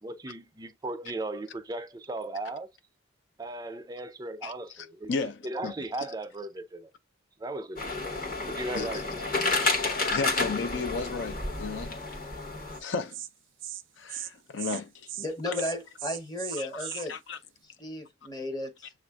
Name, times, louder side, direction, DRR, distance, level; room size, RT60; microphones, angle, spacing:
voice 1, 0.0-2.7 3.4-5.1 5.4-6.9 7.4-8.2 8.5-9.4, right 2 dB, 20° right, 0.4 m, -37 dB
voice 2, 4.4-5.7 8.7-9.0 10.1-12.0 12.8-13.2 14.0-15.1 15.5-15.6 16.6-17.4, left 4 dB, 70° left, 0.5 m, -34 dB
sound 1, 7.8-12.8, left 2 dB, 45° left, 1.0 m, -30 dB
Insect, 12.7-12.8 13.1-13.3 13.6-13.8 14.1-14.3 14.6-14.8 15.1-15.3 15.5-17.1, right 12 dB, 70° right, 0.5 m, -37 dB
voice 3, 15.2-17.2 17.8-18.9, left 1 dB, 20° left, 0.7 m, -34 dB
6.9 x 2.5 x 2.2 m
head